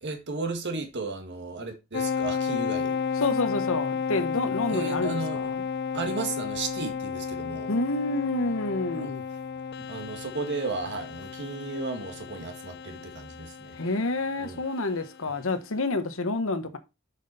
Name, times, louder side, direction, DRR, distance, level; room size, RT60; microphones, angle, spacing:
voice 1, 0.0-3.0 4.7-5.4 5.9-7.7 8.9-9.1 9.8-13.7 14.4-14.6, right 3 dB, 55° right, 1.8 m, -34 dB
sound 1, 1.9-15.1, left 6 dB, 50° left, 0.5 m, -33 dB
voice 2, 3.2-5.6 7.7-9.2 13.7-16.8, left 2 dB, 65° left, 1.1 m, -28 dB
7.1 x 6.0 x 4.0 m
head